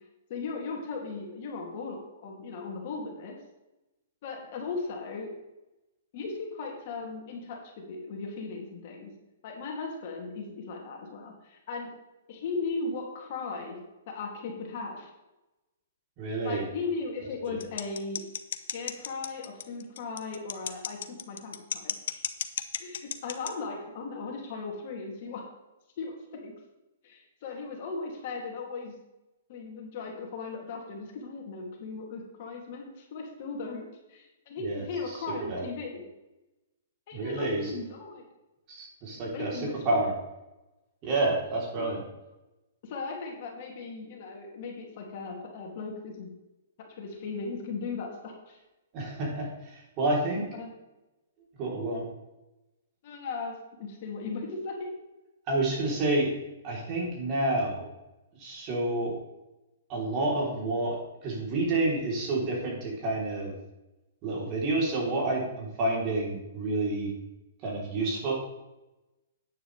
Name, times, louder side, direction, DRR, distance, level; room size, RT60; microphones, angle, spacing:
voice 1, 0.3-3.3 4.2-5.3 6.1-9.1 9.4-11.9 12.3-13.8 14.1-15.1 16.4-18.2 18.7-22.2 22.8-25.4 26.0-26.1 26.4-26.5 27.0-28.9 29.5-36.0 37.1-38.2 39.3-40.1 41.8-41.9 42.8-46.3 46.8-48.6 50.0-50.7 53.0-53.5 53.8-54.9, left 4 dB, 45° left, 0 dB, 2.7 m, -37 dB
voice 2, 16.2-16.6 17.5-17.6 34.6-35.7 37.1-37.7 38.7-40.1 41.0-42.0 48.9-50.5 51.6-52.0 55.5-56.3 56.6-57.9 58.4-59.1 59.9-63.5 64.2-67.1 67.6-68.3, right 2 dB, 30° right, -3 dB, 3.6 m, -29 dB
sound 1, 17.6-23.5, left 9 dB, 65° left, 0.8 m, -33 dB
10.0 x 9.4 x 3.4 m, 0.98 s
hypercardioid pair, 155°, 0 cm